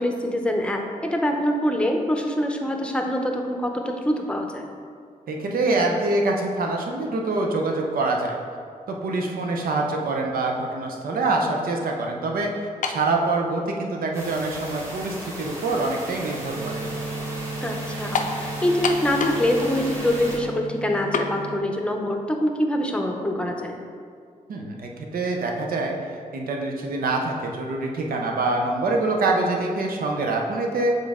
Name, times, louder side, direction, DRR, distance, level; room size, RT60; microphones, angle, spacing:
voice 1, 0.0-4.7 17.6-23.7, left 1 dB, 5° left, 2 dB, 0.6 m, -25 dB
voice 2, 5.3-8.4 8.9-12.5 12.8-16.8 24.5-31.0, right 2 dB, 90° right, 1 dB, 0.7 m, -25 dB
sound 1, 12.8-13.1 14.0-14.1 18.1-18.4 18.8-19.5 19.8-19.9 21.1-21.3, left 4 dB, 60° left, 0.5 m, -25 dB
sound 2, 14.1-20.4, right 1 dB, 20° right, 1.3 m, -36 dB
sound 3, 16.6-21.6, right 3 dB, 45° right, 0.4 m, -34 dB
7.4 x 3.8 x 3.6 m, 2.2 s
wide cardioid pair, 110°, 15 cm